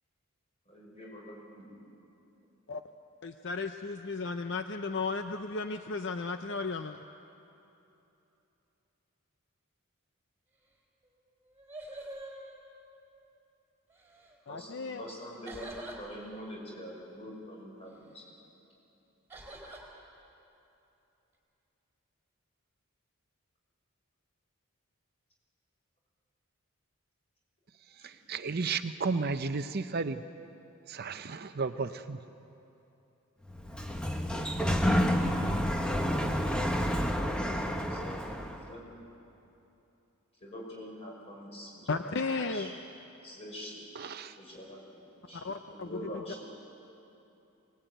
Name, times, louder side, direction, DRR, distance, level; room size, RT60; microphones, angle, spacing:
voice 1, 0.7-1.8 14.5-18.3 28.0-28.1 37.8-38.9 40.4-42.1 42.5-42.7 43.2-43.9 44.4-45.0 45.3-45.5 45.7-46.5, equal, 30° left, -2 dB, 5.9 m, -45 dB
voice 2, 3.2-7.0 14.5-15.1 41.9-42.7 45.3-46.0, left 4 dB, 55° left, 7 dB, 0.7 m, -34 dB
sound 1, 11.0-11.1 11.4-13.2 13.9-14.3 15.5-16.0 19.3-19.8, right 1 dB, 10° right, 4.1 m, -45 dB
voice 3, 28.3-30.2 30.9-32.2 44.0-44.3, right 4 dB, 45° right, 9 dB, 0.6 m, -33 dB
Sliding door, 33.5-38.6, equal, 5° left, 1.2 m, -29 dB
23.5 x 19.0 x 9.2 m, 2.9 s
head